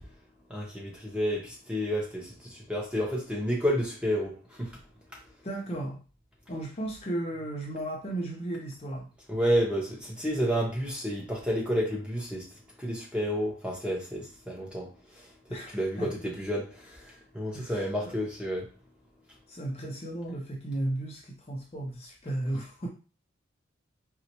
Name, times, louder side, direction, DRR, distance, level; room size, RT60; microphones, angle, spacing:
voice 1, 0.5-4.8 9.3-12.5 12.8-14.9 15.7-18.7, equal, 5° right, 0.7 m, -30 dB
voice 2, 5.4-6.0 6.5-9.1 15.5-16.1 17.5-18.2 19.5-22.9, right 1 dB, 30° left, 0.5 m, -35 dB
3.9 x 2.1 x 2.9 m
head